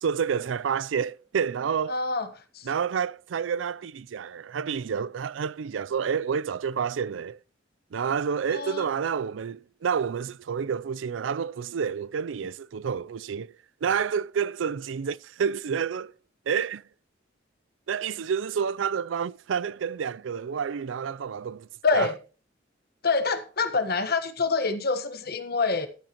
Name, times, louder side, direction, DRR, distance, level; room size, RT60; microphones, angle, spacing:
voice 1, 0.0-2.0 2.7-7.4 7.9-13.5 13.8-16.1 16.5-16.8 17.9-21.7 21.9-22.1, right 7 dB, 80° right, 0.4 m, -29 dB
voice 2, 1.9-2.3 2.5-2.7 8.5-8.8 21.8-22.2 23.0-25.9, left 4 dB, 55° left, 1.3 m, -26 dB
13.5 x 8.8 x 2.9 m
head